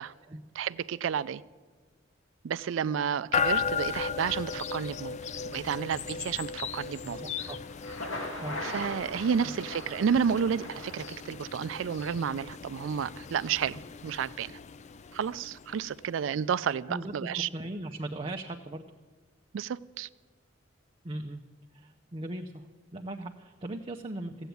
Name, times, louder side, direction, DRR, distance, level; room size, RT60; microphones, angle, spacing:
voice 1, 0.6-1.4 2.4-5.2 5.5-7.2 8.6-14.6 15.1-17.5 19.5-20.1, right 7 dB, 75° right, 0.4 m, -31 dB
sound 1, 3.3-16.3, left 6 dB, 35° left, 0.4 m, -36 dB
voice 2, 7.0-7.6 8.4-8.6 9.4-9.5 16.9-18.9 21.0-21.4 21.7-22.7 22.9-24.5, right 1 dB, 30° right, 0.6 m, -38 dB
Thunder, 7.7-11.6, left 1 dB, 90° left, 2.9 m, -40 dB
14.5 x 8.0 x 9.3 m
head